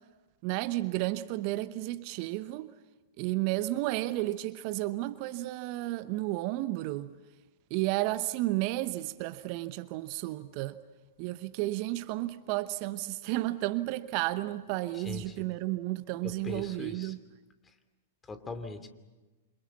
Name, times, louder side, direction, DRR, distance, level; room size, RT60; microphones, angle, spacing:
voice 1, 0.4-2.7 3.2-7.1 7.7-10.8 11.2-17.2, right 17 dB, 45° right, 0.9 m, -32 dB
voice 2, 14.9-15.3 16.2-17.1 18.3-18.9, left 3 dB, 15° left, 2.7 m, -40 dB
27.5 x 26.5 x 7.1 m
figure-of-eight pair, 105°, 0 cm